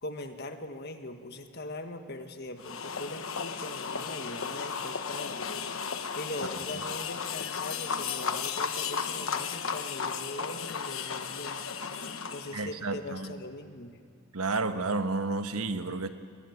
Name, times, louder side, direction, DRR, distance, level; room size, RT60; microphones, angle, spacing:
voice 1, 0.0-5.5 6.1-11.6 12.3-14.0, left 2 dB, 50° left, 6 dB, 1.6 m, -41 dB
sound 1, 2.6-12.7, left 6 dB, 70° left, 1.2 m, -34 dB
voice 2, 12.5-13.3 14.3-16.1, right 3 dB, 85° right, 9 dB, 1.3 m, -31 dB
21.5 x 19.5 x 9.5 m, 2.3 s
head